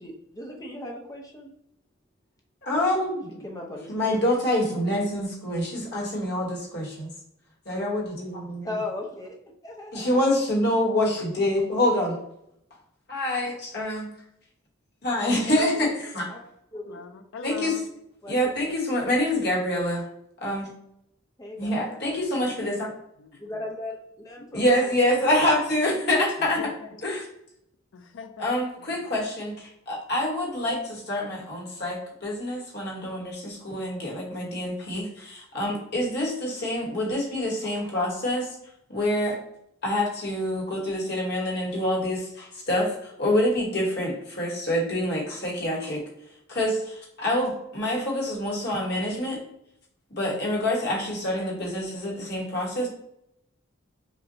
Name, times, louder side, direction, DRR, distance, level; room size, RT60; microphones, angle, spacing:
voice 1, 0.0-1.5 3.4-3.9 8.6-10.3 15.2-16.0 16.3-16.4 16.7-17.0 18.2-18.8 21.4-22.2 23.4-25.6 26.9-27.0 28.8-29.0, left 2 dB, 20° left, 0 dB, 0.6 m, -38 dB
voice 2, 2.6-3.4 3.9-7.1 7.7-8.7 9.9-12.2 13.1-14.1 15.0-16.2 17.4-17.7 18.3-20.0 20.4-20.7 21.6-22.9 24.5-26.6 27.0-27.2 28.4-38.5 38.9-39.4 39.8-46.0 46.5-49.4 50.1-52.9, left 1 dB, 55° left, -3 dB, 1.2 m, -26 dB
voice 3, 16.8-17.9 23.2-23.4 26.4-27.0 27.9-28.5, left 5 dB, 75° left, 7 dB, 0.5 m, -40 dB
5.6 x 2.2 x 2.7 m, 0.76 s
head